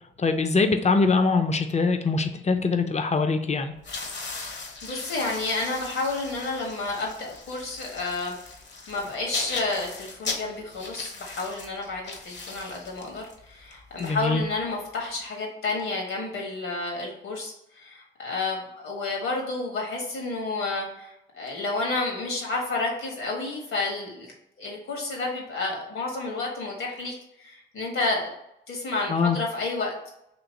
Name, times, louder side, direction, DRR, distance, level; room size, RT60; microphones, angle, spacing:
voice 1, 0.2-3.7 14.0-14.4 29.1-29.4, left 4 dB, 30° left, 7 dB, 0.6 m, -23 dB
sound 1, 3.8-14.8, left 4 dB, 55° left, 1.0 m, -38 dB
voice 2, 4.3-8.4 8.9-24.3 24.6-28.3 28.7-30.1, left 3 dB, 75° left, -1 dB, 1.4 m, -30 dB
3.0 x 3.0 x 3.9 m, 0.81 s
supercardioid pair, 50°, 21 cm